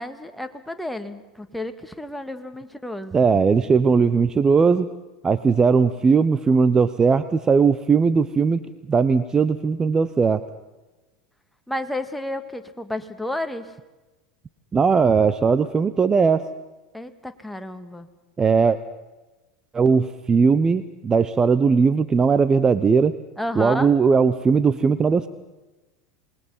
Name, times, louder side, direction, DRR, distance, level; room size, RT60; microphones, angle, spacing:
voice 1, 0.0-3.2 11.7-13.7 16.9-18.1 23.4-23.9, left 1 dB, 5° left, 7 dB, 1.9 m, -31 dB
voice 2, 3.1-4.9 5.2-8.6 8.9-10.4 14.7-16.4 18.4-18.8 19.7-23.2 23.6-25.3, right 5 dB, 20° right, 13 dB, 0.9 m, -18 dB
28.0 x 20.5 x 5.7 m, 1.1 s
hypercardioid pair, 85°, 3 cm